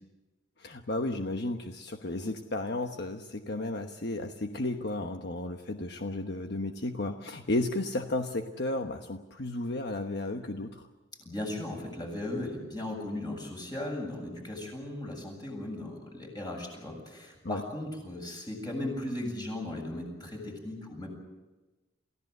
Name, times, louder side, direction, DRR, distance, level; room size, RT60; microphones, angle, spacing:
voice 1, 0.6-10.8 17.4-17.6, left 2 dB, 60° left, 5 dB, 1.2 m, -33 dB
voice 2, 11.2-21.1, left 1 dB, 20° left, 1 dB, 7.5 m, -37 dB
29.0 x 16.5 x 8.0 m, 1.2 s
head